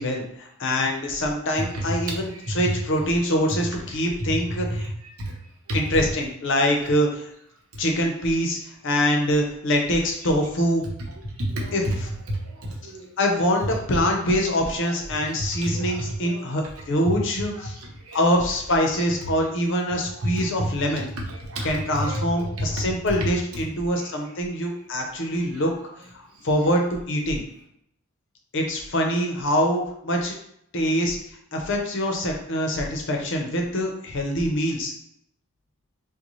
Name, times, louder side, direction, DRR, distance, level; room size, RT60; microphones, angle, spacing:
voice 1, 0.0-4.9 5.7-7.3 7.8-8.6 8.8-10.8 11.7-11.8 13.2-17.8 18.1-21.1 21.6-25.7 26.4-27.4 28.5-30.4 30.7-31.2 31.5-34.9, equal, 60° left, 2 dB, 0.7 m, -24 dB
voice 2, 11.4-12.0 12.3-13.1 15.5-16.4 17.6-18.2 18.9-19.0 20.2-20.7 21.3-22.8 24.0-24.1, right 1 dB, 70° right, -1 dB, 0.9 m, -30 dB
3.9 x 2.2 x 3.0 m, 0.72 s
head